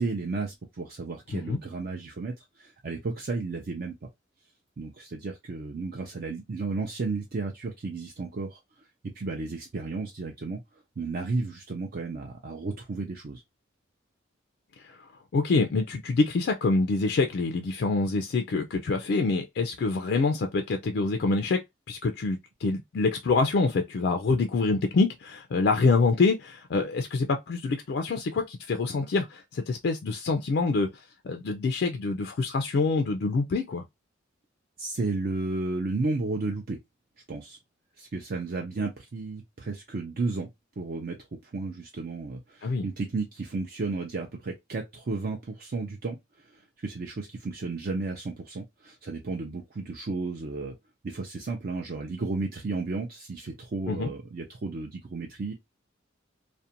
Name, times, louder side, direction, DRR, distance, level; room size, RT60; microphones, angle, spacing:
voice 1, 0.0-3.9 4.8-8.6 9.0-10.6 11.0-13.4 34.8-36.8 37.3-37.6 38.0-40.5 40.8-41.2 41.4-46.2 46.4-50.8 51.0-55.5, right 3 dB, 50° right, 0.5 m, -33 dB
voice 2, 15.3-21.6 21.9-33.8 42.6-42.8 53.9-54.1, left 3 dB, 60° left, 0.3 m, -26 dB
2.5 x 2.1 x 2.7 m
head